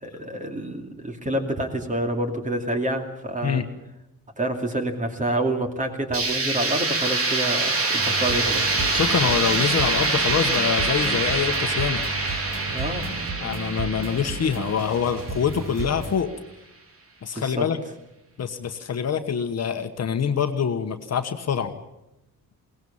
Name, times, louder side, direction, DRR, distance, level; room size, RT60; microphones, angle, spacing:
voice 1, 0.0-3.6 4.4-8.6 12.7-13.1 17.4-17.7, right 1 dB, 20° right, 4 dB, 2.6 m, -27 dB
sound 1, 6.1-15.9, right 3 dB, 40° right, 2.9 m, -25 dB
sound 2, 8.0-16.1, right 3 dB, 70° right, 4.8 m, -34 dB
voice 2, 8.9-12.0 13.4-16.3 17.2-17.8 18.4-21.7, left 7 dB, 45° left, 7 dB, 1.3 m, -25 dB
22.0 x 18.0 x 7.2 m, 0.92 s
cardioid pair, 135°, 35 cm